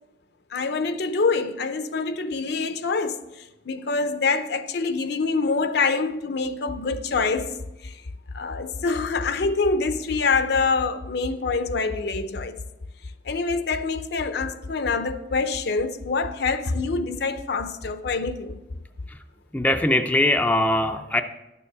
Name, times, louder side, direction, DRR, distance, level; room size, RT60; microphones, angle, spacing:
voice 1, 0.5-8.0 8.3-12.6 13.2-18.6, left 4 dB, 65° left, 0.6 m, -25 dB
voice 2, 19.5-21.2, left 1 dB, 10° left, 0.4 m, -21 dB
11.5 x 7.0 x 4.7 m
head